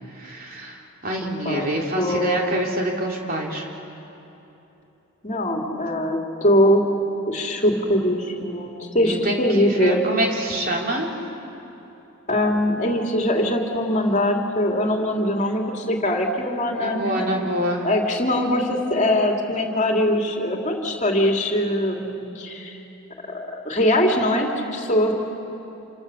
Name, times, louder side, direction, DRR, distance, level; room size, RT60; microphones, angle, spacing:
voice 1, 0.1-3.7 9.0-11.1 16.8-17.9, right 1 dB, 45° right, -1 dB, 3.3 m, -26 dB
voice 2, 2.0-2.6 5.2-6.8 7.3-10.1 12.3-17.3 17.8-22.8 23.3-25.1, left 1 dB, 35° left, 1 dB, 2.8 m, -22 dB
28.0 x 26.5 x 7.0 m, 3.0 s
head